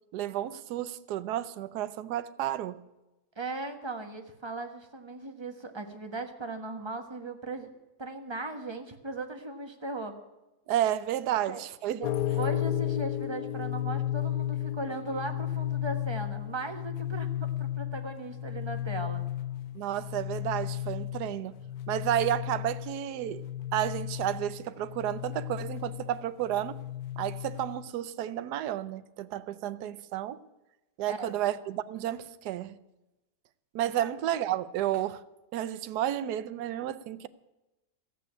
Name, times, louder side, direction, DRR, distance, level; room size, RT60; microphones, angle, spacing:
voice 1, 0.1-2.8 10.7-12.0 19.7-21.5 21.9-23.4 23.7-26.8 27.2-30.4 31.0-32.8 33.7-35.2 35.5-37.3, right 12 dB, 75° right, 1.2 m, -31 dB
voice 2, 3.4-7.7 8.0-10.2 11.3-11.6 11.9-12.1 12.4-19.2 31.1-31.3 34.0-34.1, right 2 dB, 15° right, 1.2 m, -38 dB
sound 1, 12.0-27.9, left 12 dB, 70° left, 1.1 m, -34 dB
14.0 x 8.4 x 9.9 m
omnidirectional pair, 1.8 m